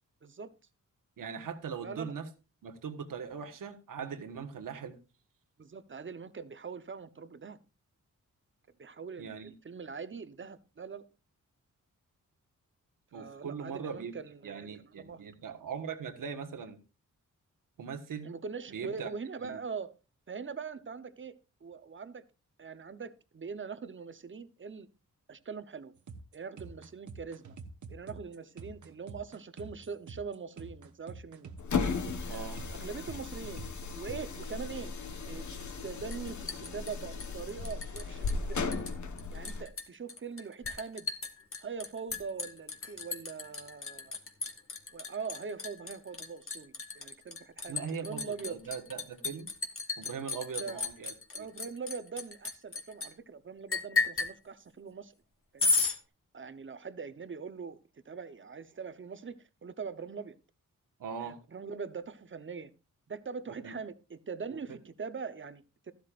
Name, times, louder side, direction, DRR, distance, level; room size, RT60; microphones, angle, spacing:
voice 1, 0.2-0.5 1.8-2.1 5.6-7.6 8.8-11.0 13.1-14.7 14.9-15.2 18.2-19.9 20.3-22.2 22.6-24.9 25.3-25.9 26.3-27.6 27.9-31.5 32.3-33.6 34.0-34.9 35.3-35.5 35.8-38.6 39.3-41.1 41.6-44.2 44.9-48.6 50.6-50.8 51.3-55.1 55.5-55.6 56.3-57.8 58.0-59.4 59.6-60.4 61.2-62.7 63.1-65.9, right 5 dB, 40° right, 0.9 m, -42 dB
voice 2, 1.2-2.3 2.6-4.9 9.2-9.5 13.1-14.1 14.4-16.8 17.8-18.3 18.7-19.1 19.4-19.6 32.3-32.6 47.7-49.5 50.0-51.5 61.0-61.4 63.6-63.7 64.5-64.6, right 6 dB, 80° right, 1.5 m, -40 dB
sound 1, 26.0-34.4, right 4 dB, 65° right, 1.3 m, -47 dB
sound 2, 31.6-39.7, left 4 dB, 65° left, 1.3 m, -36 dB
Liquid, 36.1-38.0 38.3-38.9 39.2-53.1 53.7-54.3 55.6-56.0, left 4 dB, 40° left, 1.8 m, -34 dB
13.0 x 12.0 x 2.5 m
cardioid pair, 80°, 32 cm